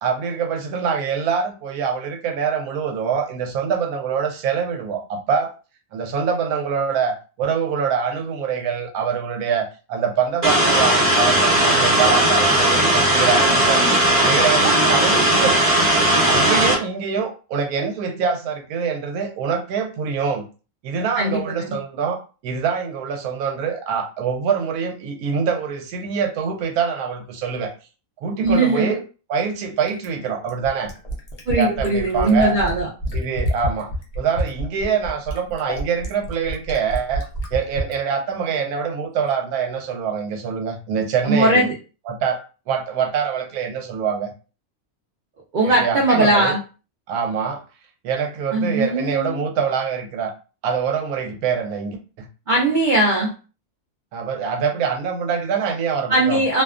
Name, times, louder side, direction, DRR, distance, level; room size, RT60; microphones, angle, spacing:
voice 1, 0.0-5.5 5.9-13.9 14.2-15.6 16.2-20.5 20.8-27.7 28.2-29.0 29.3-30.9 31.5-32.6 33.1-33.9 34.2-37.3 37.5-41.7 42.1-42.4 42.7-44.3 45.6-46.6 47.1-47.6 48.0-50.3 50.6-52.3 54.1-56.4, right 6 dB, 90° right, 4 dB, 1.1 m, -24 dB
sound 1, 10.4-16.7, right 1 dB, 35° right, 0.8 m, -17 dB
voice 2, 21.2-21.8 28.4-28.9 31.5-32.9 41.2-41.7 45.5-46.6 48.5-49.4 52.5-53.3 56.1-56.6, right 1 dB, 65° right, -3 dB, 0.4 m, -19 dB
Fill (with liquid), 29.9-38.0 39.3-39.4, equal, 90° left, 0.3 m, -28 dB
2.5 x 2.2 x 2.4 m, 0.34 s
omnidirectional pair, 1.5 m